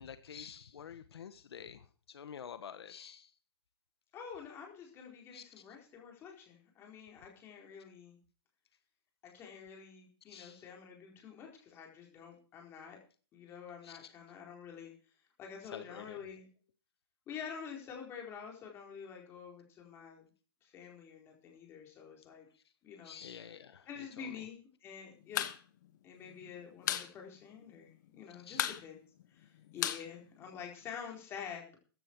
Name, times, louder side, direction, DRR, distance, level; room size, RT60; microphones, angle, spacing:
voice 1, 0.0-3.3 5.3-5.4 10.3-10.6 13.8-14.0 15.7-16.2 23.0-24.3 28.4-28.7, left 8 dB, 80° left, 11 dB, 1.3 m, -49 dB
voice 2, 4.1-8.2 9.2-13.0 13.3-14.9 15.4-16.5 17.3-20.3 20.6-22.5 22.8-23.5 23.9-25.4 26.0-29.0 29.3-31.8, left 7 dB, 20° left, 1 dB, 4.4 m, -48 dB
sound 1, 25.2-25.6 25.8-25.9 26.2-27.1 27.4-27.5 27.8-28.2 28.5-30.9, left 12 dB, 50° left, 1.3 m, -35 dB
15.0 x 11.0 x 4.7 m, 0.38 s
hypercardioid pair, 165°, 13 cm